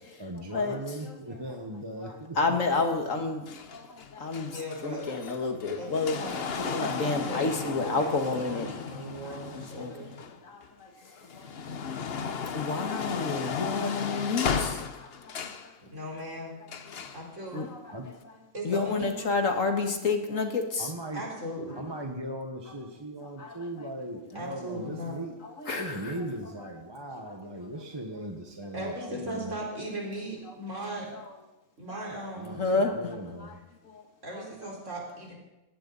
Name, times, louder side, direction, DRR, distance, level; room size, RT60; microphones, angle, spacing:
voice 1, 0.2-2.6 17.9-18.1 20.8-21.2 21.7-25.3 25.7-29.5 32.3-33.6, right 1 dB, 20° right, 2 dB, 1.3 m, -38 dB
voice 2, 2.4-3.4 3.7-3.8 4.2-6.2 6.6-9.0 9.5-10.1 12.5-14.8 17.5-17.8 18.6-20.9 23.4-23.5 25.6-26.1 27.2-27.3 31.2-31.3 31.9-32.1 32.6-33.2 34.4-34.7, left 3 dB, 65° left, 4 dB, 2.1 m, -29 dB
sound 1, 3.5-10.7 11.1-15.7 16.7-17.2 18.1-18.2, left 6 dB, 50° left, 1.0 m, -35 dB
voice 3, 4.4-5.1 5.8-6.4 6.8-10.2 15.8-16.7 17.1-17.6 18.5-19.1 21.1-21.8 24.3-25.2 28.7-31.1 31.8-32.7 34.2-35.4, right 1 dB, 55° right, -3 dB, 5.0 m, -38 dB
19.5 x 17.0 x 4.1 m, 0.97 s
omnidirectional pair, 1.5 m